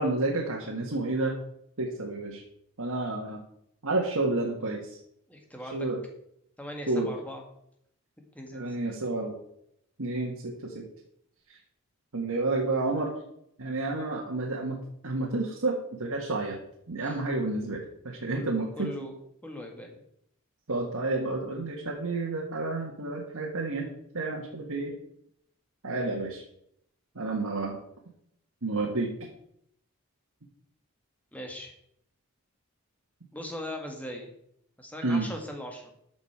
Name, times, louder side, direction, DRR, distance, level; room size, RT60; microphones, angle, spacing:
voice 1, 0.0-1.4 1.8-2.4 2.8-3.4 3.8-5.0 5.6-6.0 6.9-7.1 8.5-9.4 10.0-10.9 11.5-11.6 12.1-13.1 13.6-14.8 15.0-16.6 16.9-19.1 20.7-23.9 24.1-24.9 25.8-26.4 27.2-27.8 28.6-29.3 35.0-35.3, right 2 dB, 85° right, -1 dB, 1.7 m, -30 dB
voice 2, 5.3-5.9 6.6-7.4 8.4-8.8 17.0-17.2 18.3-18.5 18.8-20.0 31.3-31.7 33.3-34.3 34.8-35.9, left 1 dB, 5° left, 2 dB, 1.8 m, -40 dB
13.0 x 6.2 x 4.8 m, 0.74 s
head